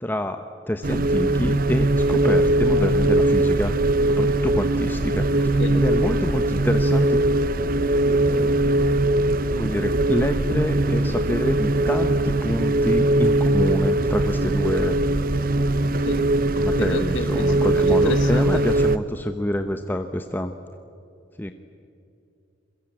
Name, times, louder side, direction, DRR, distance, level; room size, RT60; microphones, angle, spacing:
voice 1, 0.0-3.7 4.0-5.5 5.7-7.2 8.1-8.6 9.6-15.0 16.6-20.5 21.4-21.5, equal, 10° left, 7 dB, 0.8 m, -27 dB
sound 1, 0.8-19.0, right 1 dB, 50° right, 0.8 m, -21 dB
voice 2, 5.4-5.8 15.8-18.6, left 3 dB, 80° left, 8 dB, 1.5 m, -32 dB
28.0 x 22.5 x 8.7 m, 2.6 s
head